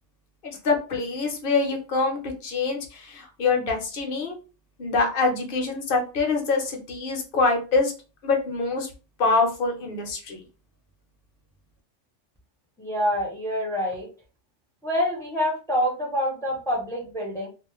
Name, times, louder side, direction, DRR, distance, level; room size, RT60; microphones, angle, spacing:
voice 1, 0.4-4.4 4.8-7.9 8.2-8.9 9.2-10.4, left 3 dB, 55° left, 2 dB, 0.8 m, -25 dB
voice 2, 12.8-14.1 14.8-17.5, equal, 5° left, -2 dB, 0.6 m, -26 dB
2.3 x 2.1 x 2.9 m, 0.33 s
omnidirectional pair, 1.2 m